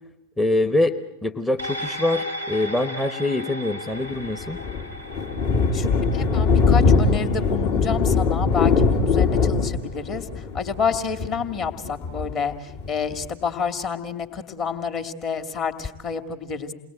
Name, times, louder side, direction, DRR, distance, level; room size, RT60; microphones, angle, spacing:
voice 1, 0.4-4.6, left 2 dB, 5° left, 10 dB, 1.0 m, -24 dB
sound 1, 1.6-10.3 10.7-10.8, equal, 85° left, 3.7 m, -37 dB
Thunder, 4.1-13.2, left 4 dB, 50° left, 2.5 m, -21 dB
voice 2, 6.1-16.7, left 6 dB, 35° left, 6 dB, 2.5 m, -29 dB
29.0 x 20.5 x 9.0 m, 0.92 s
figure-of-eight pair, 90°, 0 cm